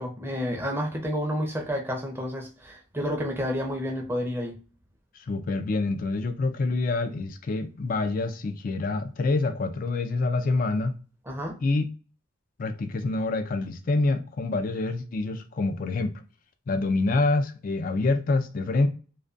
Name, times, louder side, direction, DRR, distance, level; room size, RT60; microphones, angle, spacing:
voice 1, 0.0-4.6 11.3-11.6, equal, 10° right, 0.5 m, -30 dB
voice 2, 5.1-10.9 11.6-11.9 12.6-16.1 16.7-18.9, left 3 dB, 45° left, 0.3 m, -26 dB
2.3 x 2.2 x 2.4 m
head